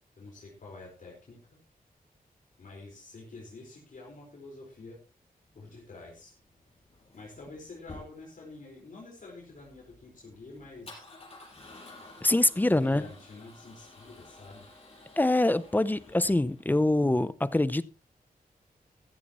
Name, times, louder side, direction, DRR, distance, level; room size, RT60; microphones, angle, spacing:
voice 1, 0.2-1.6 2.6-5.0 5.5-6.3 7.1-11.0 12.6-14.7, left 3 dB, 60° left, 4.7 m, -47 dB
Male speech man speaking / Car / Engine starting, 5.5-16.6, left 2 dB, 40° left, 6.0 m, -52 dB
voice 2, 12.2-13.0 15.2-17.8, left 2 dB, 10° left, 0.6 m, -24 dB
15.0 x 13.5 x 3.0 m
wide cardioid pair, 155°, 15 cm